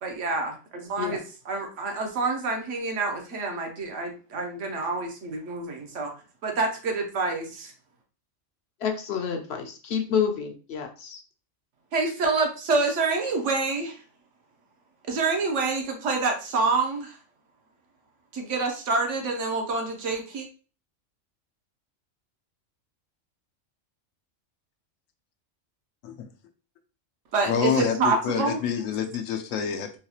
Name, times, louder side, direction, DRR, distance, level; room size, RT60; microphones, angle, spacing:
voice 1, 0.0-1.2 1.5-6.1 6.4-7.7 11.9-14.0 15.1-17.2 18.3-20.5 27.3-28.6, right 3 dB, 70° right, 3 dB, 1.1 m, -27 dB
voice 2, 8.8-11.2, left 7 dB, 65° left, 4 dB, 0.7 m, -28 dB
voice 3, 27.5-30.0, left 8 dB, 85° left, 7 dB, 1.0 m, -27 dB
3.9 x 2.3 x 2.8 m, 0.36 s
omnidirectional pair, 1.3 m